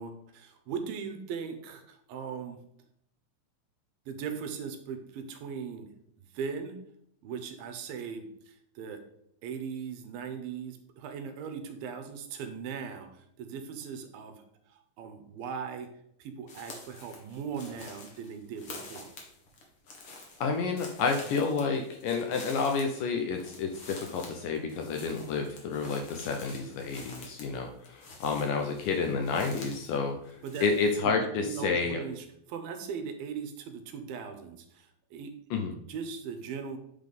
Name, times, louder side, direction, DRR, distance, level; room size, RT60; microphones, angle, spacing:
voice 1, 0.0-2.6 4.1-5.9 6.3-6.8 7.2-9.0 9.4-15.9 16.2-19.1 30.4-30.7 31.0-35.3 35.9-36.8, right 6 dB, 75° right, 6 dB, 2.4 m, -39 dB
sound 1, 16.5-30.0 30.2-31.0, left 3 dB, 55° left, 1.6 m, -48 dB
voice 2, 20.4-30.3 30.6-32.0 35.5-35.7, left 4 dB, 75° left, 3 dB, 2.0 m, -30 dB
8.4 x 4.0 x 5.2 m, 0.74 s
omnidirectional pair, 4.5 m